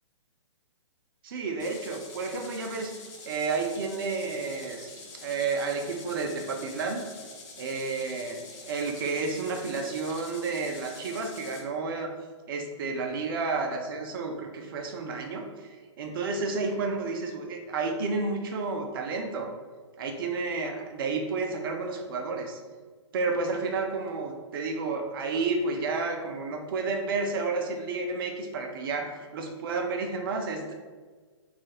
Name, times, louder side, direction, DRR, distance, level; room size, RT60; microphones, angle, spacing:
voice 1, 1.2-2.9 3.3-4.9 5.2-7.0 7.6-12.1 12.5-19.5 20.0-22.6 23.1-30.8, right 4 dB, 45° right, 3 dB, 0.5 m, -31 dB
sound 1, 1.6-11.6, left 3 dB, 35° left, 0.6 m, -46 dB
3.1 x 2.4 x 2.8 m, 1.4 s
hypercardioid pair, 145°, 16 cm